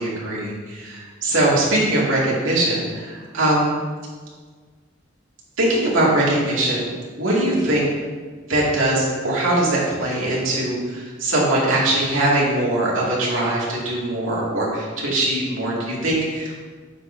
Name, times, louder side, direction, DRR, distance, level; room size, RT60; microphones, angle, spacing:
voice 1, 0.0-3.8 5.6-6.9 7.2-7.9 8.5-16.6, right 1 dB, 80° right, -5 dB, 2.2 m, -21 dB
9.0 x 6.3 x 2.7 m, 1.5 s
head